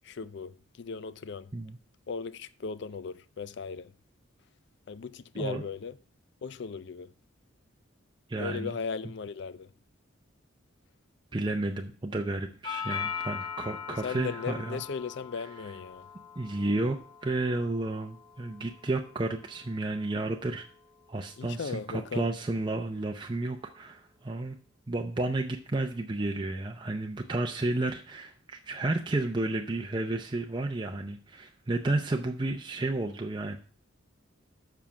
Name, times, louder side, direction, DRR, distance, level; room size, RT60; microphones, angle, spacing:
voice 1, 0.0-1.5 2.1-3.9 4.9-6.0 6.4-7.1 8.4-9.7 13.9-16.1 21.4-22.3, left 5 dB, 55° left, 0.4 m, -37 dB
voice 2, 8.3-8.8 11.3-14.8 16.4-17.0 17.2-20.7 21.1-24.6 24.9-33.6, right 2 dB, 25° right, 0.5 m, -32 dB
Doorbell, 12.6-20.7, left 7 dB, 25° left, 1.9 m, -41 dB
7.3 x 5.7 x 5.9 m
head